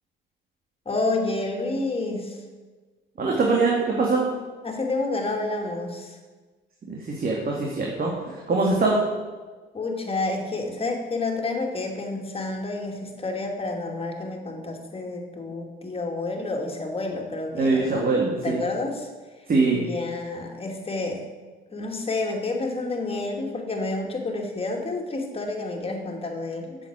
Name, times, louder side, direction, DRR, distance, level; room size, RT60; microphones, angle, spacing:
voice 1, 0.9-2.4 4.6-6.2 8.5-8.9 9.7-18.1 18.4-19.1 19.7-21.2 21.7-26.8, left 2 dB, 30° left, 2 dB, 2.5 m, -29 dB
voice 2, 3.2-4.2 6.9-9.0 17.6-18.6 19.5-19.8, right 3 dB, 45° right, -1 dB, 2.1 m, -23 dB
8.2 x 7.5 x 8.8 m, 1.3 s
cardioid pair, 90°, 20 cm